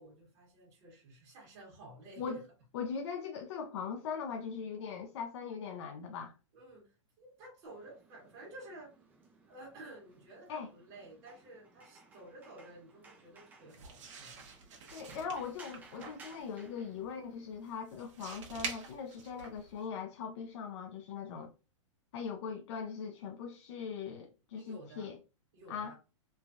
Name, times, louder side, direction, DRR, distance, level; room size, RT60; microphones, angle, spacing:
voice 1, 0.0-2.4 6.5-9.0 9.4-14.4 24.5-25.1 25.5-25.9, right 1 dB, 45° right, 1.2 m, -52 dB
voice 2, 2.7-6.3 10.5-10.7 14.9-21.5 22.1-25.2 25.7-25.9, left 6 dB, 55° left, 0.4 m, -40 dB
sound 1, 7.6-17.7, right 3 dB, 10° right, 0.4 m, -60 dB
sound 2, 13.7-19.9, right 5 dB, 65° right, 1.0 m, -47 dB
3.2 x 2.2 x 2.4 m
hypercardioid pair, 150°, 17 cm